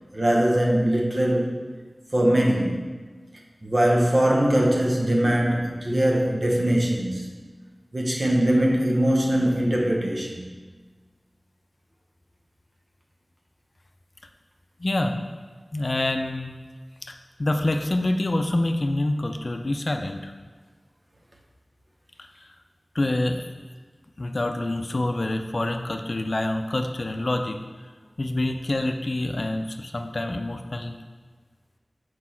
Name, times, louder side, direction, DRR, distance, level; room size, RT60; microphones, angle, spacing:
voice 1, 0.1-1.7 2.1-2.9 3.6-7.3 7.9-10.5, right 1 dB, 50° right, -1 dB, 1.1 m, -22 dB
voice 2, 14.8-15.1 15.7-16.6 17.0-17.1 17.4-20.3 22.9-23.5 24.2-27.6 28.2-30.9, left 1 dB, 55° left, 5 dB, 0.5 m, -26 dB
6.2 x 4.7 x 4.4 m, 1.4 s
wide cardioid pair, 55°, 0 cm